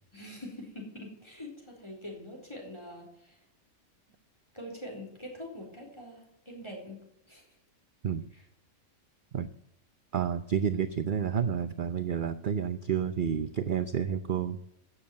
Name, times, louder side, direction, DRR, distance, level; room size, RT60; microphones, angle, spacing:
voice 1, 0.1-3.4 4.5-7.4 8.3-8.4, left 1 dB, 20° left, -1 dB, 4.0 m, -44 dB
voice 2, 10.1-14.6, right 8 dB, 50° right, 11 dB, 0.7 m, -30 dB
16.0 x 7.2 x 7.6 m, 0.79 s
omnidirectional pair, 1.5 m